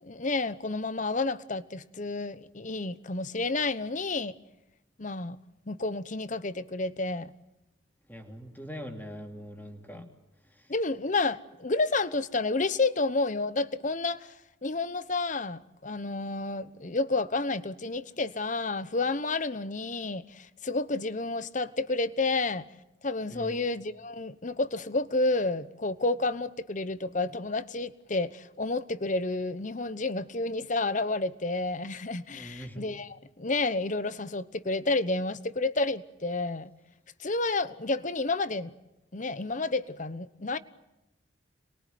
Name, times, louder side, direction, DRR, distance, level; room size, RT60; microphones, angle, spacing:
voice 1, 0.0-4.3 5.0-5.4 5.7-7.3 9.9-10.1 10.7-14.3 14.6-22.6 23.0-36.7 37.2-38.7 39.1-40.6, left 3 dB, 40° left, 1.0 m, -30 dB
voice 2, 8.1-10.0 23.3-23.6 32.3-32.9, equal, 10° left, 2.7 m, -42 dB
27.0 x 22.0 x 9.3 m
head